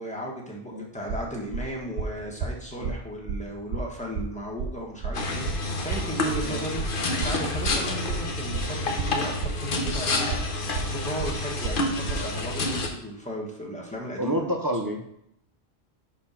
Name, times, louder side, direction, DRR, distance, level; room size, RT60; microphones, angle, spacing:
voice 1, 0.0-10.4 10.9-14.4, equal, 5° left, -3 dB, 1.4 m, -35 dB
sound 1, 1.1-12.2, right 5 dB, 85° right, 0.9 m, -32 dB
sound 2, 5.1-12.9, left 2 dB, 55° left, 1.0 m, -29 dB
voice 2, 14.2-15.0, right 1 dB, 25° right, 3 dB, 0.5 m, -28 dB
5.1 x 4.4 x 5.7 m, 0.75 s
omnidirectional pair, 1.1 m